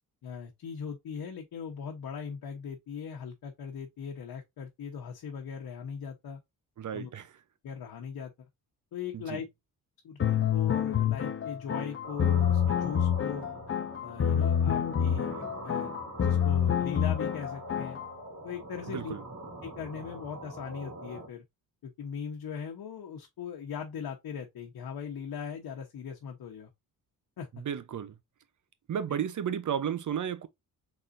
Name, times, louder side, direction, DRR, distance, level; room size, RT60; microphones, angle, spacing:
voice 1, 0.2-6.4 6.9-7.1 7.6-8.3 8.9-9.5 10.0-13.5 14.0-15.9 16.2-18.0 18.4-19.1 19.6-21.4 21.8-26.7 27.4-27.5, left 7 dB, 65° left, 1.1 m, -39 dB
voice 2, 6.8-7.3 9.1-9.4 18.9-19.2 27.5-28.2 28.9-30.5, right 8 dB, 50° right, 0.8 m, -33 dB
sound 1, 10.2-18.1, left 9 dB, 35° left, 0.6 m, -27 dB
sound 2, 12.0-21.3, right 2 dB, 75° right, 2.3 m, -43 dB
4.1 x 3.9 x 2.5 m
cardioid pair, 80°, 38 cm